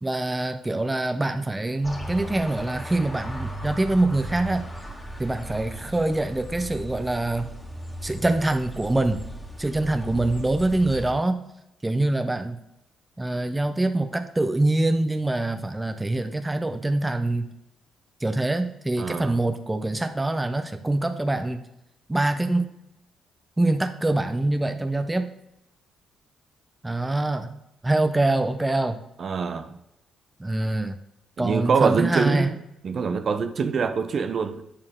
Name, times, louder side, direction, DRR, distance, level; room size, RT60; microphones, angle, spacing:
voice 1, 0.0-4.6 5.2-7.5 8.0-9.2 9.6-11.4 11.8-12.6 13.2-17.5 18.2-21.6 22.1-22.7 23.6-25.3 26.8-27.5 27.8-29.0 30.4-31.0 31.4-32.5, right 2 dB, 15° right, 7 dB, 0.7 m, -24 dB
sound 1, 1.8-11.1, right 1 dB, 10° left, 1.9 m, -37 dB
voice 2, 19.0-19.4 29.2-29.8 31.4-32.6 32.8-34.6, right 5 dB, 50° right, 9 dB, 0.8 m, -25 dB
8.6 x 6.8 x 3.7 m, 0.87 s
cardioid pair, 90°, 0 cm